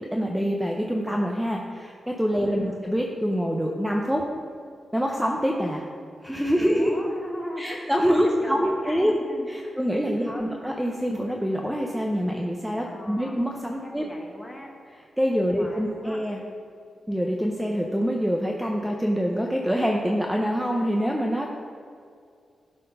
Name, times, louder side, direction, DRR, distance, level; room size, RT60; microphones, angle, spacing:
voice 1, 0.1-4.3 4.9-5.8 6.2-6.9 7.6-9.1 9.5-14.0 15.2-16.4 17.1-21.5, equal, 5° right, 0 dB, 0.7 m, -25 dB
voice 2, 2.3-2.8 6.5-9.8 10.2-10.5 12.8-13.4 13.8-14.7 15.5-16.2, equal, 15° left, 0 dB, 1.5 m, -39 dB
11.5 x 4.3 x 5.5 m, 2.3 s
cardioid pair, 100°, 0 cm